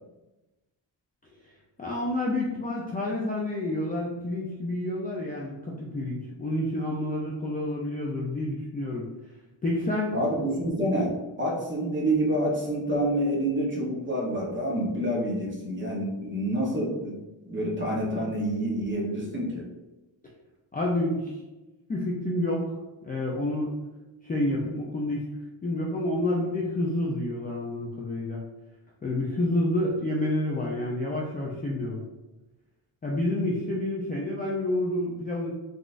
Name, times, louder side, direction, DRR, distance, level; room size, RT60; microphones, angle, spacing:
voice 1, 1.8-9.1 9.6-10.2 20.7-21.4 21.9-22.6 23.0-23.7 24.2-25.2 25.6-28.4 29.0-32.0 33.0-35.5, left 1 dB, 20° left, -4 dB, 0.4 m, -29 dB
voice 2, 10.1-11.1 11.4-17.2 17.5-19.6, right 1 dB, 25° right, -3 dB, 0.9 m, -27 dB
3.8 x 2.4 x 2.4 m, 1.1 s
cardioid pair, 105°, 45 cm